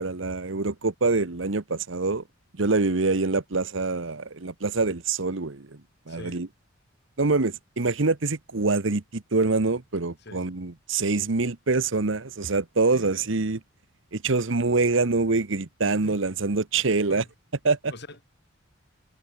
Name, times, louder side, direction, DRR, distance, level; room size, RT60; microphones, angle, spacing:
voice 1, 0.0-2.2 2.6-5.7 6.1-6.5 7.2-13.6 14.1-17.2 17.6-17.9, right 3 dB, 65° right, 1.1 m, -25 dB
voice 2, 6.1-6.4 10.2-10.4 12.9-13.1 16.0-16.2 17.1-17.3 17.9-18.2, left 2 dB, 55° left, 6.6 m, -43 dB
head